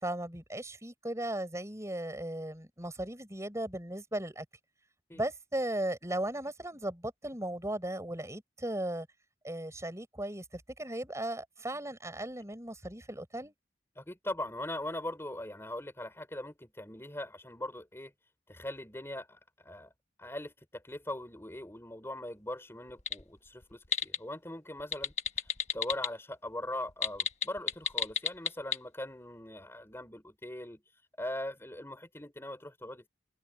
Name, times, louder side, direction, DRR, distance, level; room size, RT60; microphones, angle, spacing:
voice 1, 0.0-4.5 5.1-9.1 9.4-13.5, right 1 dB, 15° right, 5.4 m, -37 dB
voice 2, 14.0-18.1 18.5-19.9 20.2-25.1 25.7-30.8 31.2-33.1, left 1 dB, 15° left, 3.9 m, -41 dB
sound 1, 22.9-23.2 23.6-24.2 24.8-26.1 26.9-28.8, left 7 dB, 40° left, 1.4 m, -30 dB
head